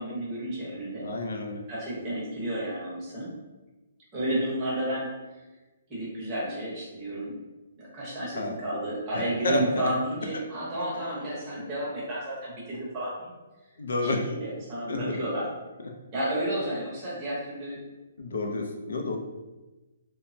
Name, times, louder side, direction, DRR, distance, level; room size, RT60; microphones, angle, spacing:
voice 1, 0.0-1.0 1.7-3.3 4.1-5.1 5.9-7.3 7.8-13.3 14.0-15.4 16.1-17.8, right 1 dB, 15° right, -7 dB, 0.8 m, -32 dB
voice 2, 1.0-1.6 8.3-8.6 9.1-9.9 10.3-10.4 11.5-11.7 13.8-14.2 14.9-15.3 15.8-15.9 18.2-19.2, left 2 dB, 75° left, 2 dB, 0.4 m, -30 dB
3.1 x 2.0 x 2.5 m, 1.1 s
hypercardioid pair, 175°, 0 cm